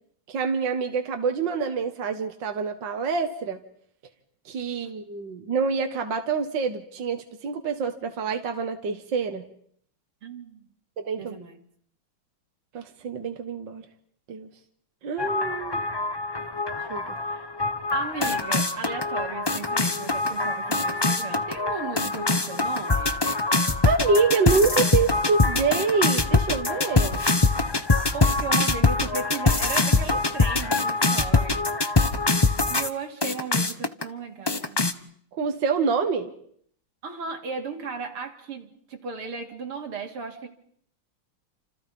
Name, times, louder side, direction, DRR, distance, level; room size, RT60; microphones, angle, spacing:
voice 1, 0.3-3.6 4.5-9.4 11.0-11.3 12.7-13.8 14.3-14.5 15.0-15.8 16.9-17.2 23.8-27.2 35.3-36.3, right 5 dB, 55° right, 5 dB, 2.2 m, -26 dB
voice 2, 10.2-10.7 11.2-11.6 17.2-17.5 17.9-23.3 28.1-31.7 32.7-34.8 37.0-40.5, right 5 dB, 80° right, 4 dB, 3.5 m, -36 dB
sound 1, 15.2-32.9 33.2-34.0 34.5-34.9, left 3 dB, 25° left, 0.5 m, -24 dB
29.5 x 27.5 x 5.5 m, 0.65 s
omnidirectional pair, 2.4 m